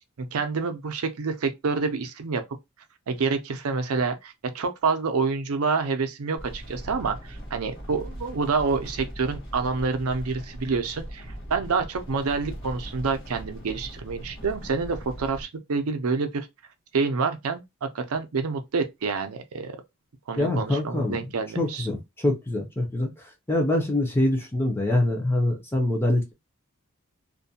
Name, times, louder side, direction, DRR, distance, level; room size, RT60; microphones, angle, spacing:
voice 1, 0.2-2.4 3.1-16.5 16.9-19.7 20.3-21.9, right 4 dB, 70° right, 0.5 m, -27 dB
sound 1, 6.4-15.4, equal, 55° left, 1.1 m, -39 dB
voice 2, 20.4-21.2 21.6-23.1 23.5-26.3, left 1 dB, 10° left, 0.5 m, -24 dB
2.5 x 2.2 x 2.7 m
head